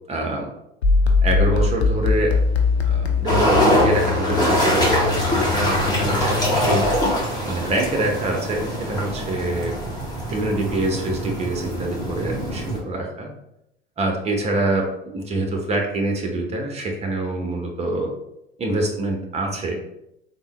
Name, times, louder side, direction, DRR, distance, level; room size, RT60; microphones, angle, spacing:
voice 1, 0.1-0.5 1.2-2.4 2.8-6.9 7.4-9.8 10.3-13.3 14.0-18.1 18.6-19.8, right 2 dB, 20° right, 1 dB, 0.7 m, -25 dB
sound 1, 0.8-7.2, left 4 dB, 85° left, 0.5 m, -22 dB
sound 2, 3.3-12.8, equal, 15° left, 1.2 m, -23 dB
3.5 x 2.1 x 3.0 m, 0.81 s
figure-of-eight pair, 75°, 32 cm